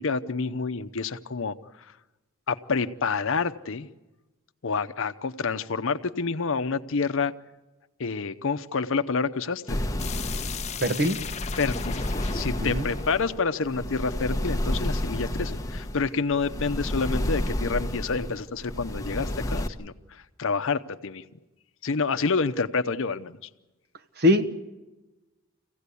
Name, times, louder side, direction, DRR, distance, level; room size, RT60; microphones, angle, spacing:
voice 1, 0.0-1.5 2.5-3.9 4.6-7.3 8.0-9.8 11.5-12.0 12.3-21.2 21.8-23.4, left 4 dB, 65° left, 10 dB, 0.7 m, -28 dB
sound 1, 9.7-19.7, left 1 dB, 15° left, 1.0 m, -30 dB
sound 2, 10.0-14.7, left 7 dB, 30° left, 0.7 m, -38 dB
voice 2, 10.8-11.2 12.6-12.8 24.2-24.5, left 1 dB, 50° right, 9 dB, 1.2 m, -22 dB
25.5 x 16.5 x 8.3 m, 1.1 s
head